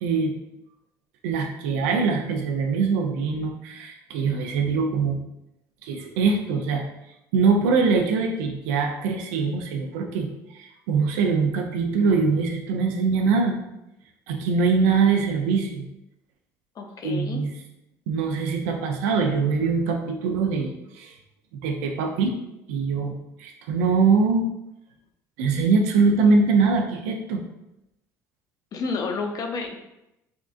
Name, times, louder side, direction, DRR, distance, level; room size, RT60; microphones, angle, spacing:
voice 1, 0.0-0.3 1.2-5.2 5.8-6.8 7.3-10.3 10.5-13.6 14.3-15.9 17.0-17.5 18.1-21.1 21.6-22.3 22.7-24.5 25.4-27.4, right 4 dB, 85° right, 4 dB, 0.4 m, -23 dB
voice 2, 16.8-17.4 28.7-29.8, left 4 dB, 45° left, 4 dB, 0.5 m, -30 dB
3.5 x 2.5 x 2.4 m, 0.88 s
supercardioid pair, 85°, 8 cm